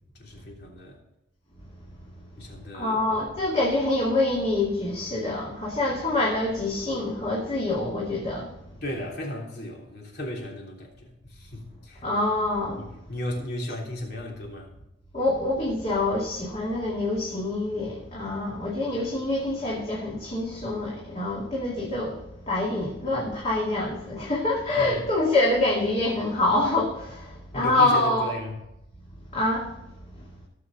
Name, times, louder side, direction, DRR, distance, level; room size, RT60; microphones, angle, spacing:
voice 1, 0.2-1.0 2.4-3.3 8.8-12.1 12.8-14.7 24.8-25.1 27.5-28.6, left 1 dB, 55° left, -1 dB, 3.2 m, -35 dB
voice 2, 2.7-8.5 12.0-12.9 15.1-28.3 29.3-29.8, left 2 dB, 35° left, -4 dB, 2.4 m, -26 dB
17.5 x 7.1 x 3.9 m, 0.90 s
head